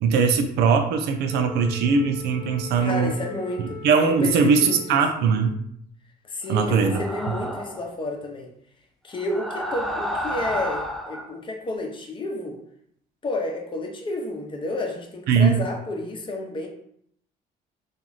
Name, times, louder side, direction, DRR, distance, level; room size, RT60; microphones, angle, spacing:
voice 1, 0.0-3.1 3.8-5.5 6.5-7.0 15.3-15.6, right 5 dB, 75° right, 5 dB, 0.5 m, -20 dB
Wind instrument woodwind instrument, 1.3-5.6, left 6 dB, 55° right, 1.0 m, -42 dB
voice 2, 2.7-3.8 4.1-5.0 6.2-8.5 9.0-12.6 13.2-16.7, left 2 dB, 30° left, 2 dB, 0.8 m, -31 dB
sound 1, 6.7-7.9 9.1-11.3, equal, ahead, 0.3 m, -31 dB
3.0 x 2.5 x 3.9 m, 0.70 s
cardioid pair, 110°, 17 cm